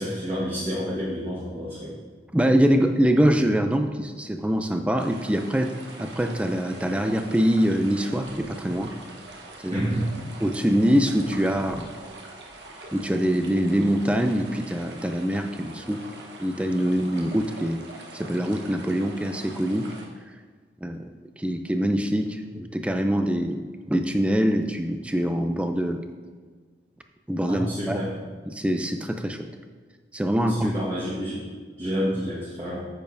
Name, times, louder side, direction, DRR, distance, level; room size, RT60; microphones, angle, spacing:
voice 1, 0.0-1.9 9.7-10.1 27.5-28.1 30.5-32.9, equal, 30° right, -8 dB, 1.4 m, -29 dB
voice 2, 2.3-5.7 6.0-8.9 9.6-9.9 10.4-11.9 12.9-16.1 16.4-17.8 18.1-19.9 20.8-21.0 21.4-23.6 23.9-26.0 27.3-28.0 28.5-29.5 30.1-30.8, equal, 5° right, 6 dB, 0.4 m, -24 dB
sound 1, 5.0-20.1, right 2 dB, 80° right, 1.1 m, -43 dB
sound 2, 8.1-14.6, equal, 60° left, 1.3 m, -46 dB
10.0 x 6.9 x 2.6 m, 1.5 s
head